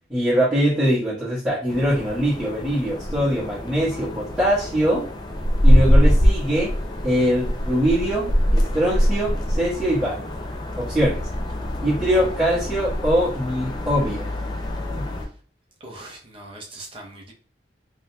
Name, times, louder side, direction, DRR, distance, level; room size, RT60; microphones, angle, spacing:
voice 1, 0.1-5.0 5.6-6.7 7.0-10.3 10.8-11.2 11.8-14.3 14.9-15.1, equal, 5° right, -12 dB, 1.2 m, -22 dB
sound 1, 1.7-15.3, equal, 25° left, 0.4 m, -23 dB
voice 2, 15.8-17.3, right 2 dB, 30° right, 0 dB, 0.6 m, -40 dB
3.6 x 2.7 x 2.2 m, 0.41 s
head